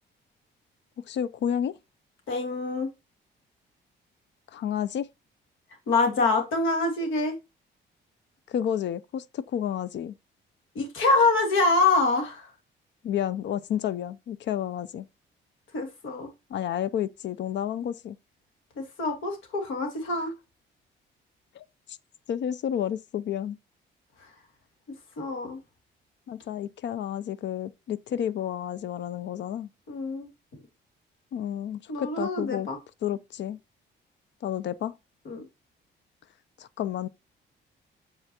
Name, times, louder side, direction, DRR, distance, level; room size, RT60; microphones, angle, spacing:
voice 1, 1.1-1.8 4.5-5.1 8.5-10.2 13.0-15.1 16.5-18.2 21.6-22.0 22.3-23.6 26.3-29.7 31.3-32.7 33.0-33.6 34.4-34.9 36.6-37.1, left 10 dB, 65° left, 0.5 m, -31 dB
voice 2, 2.3-2.9 5.9-7.4 10.7-12.5 15.7-16.3 18.8-20.3 25.2-25.6 29.9-30.3 31.9-32.8 35.3-35.4, left 3 dB, 80° left, 2.5 m, -25 dB
6.9 x 5.5 x 2.8 m
cardioid pair, 90°, 20 cm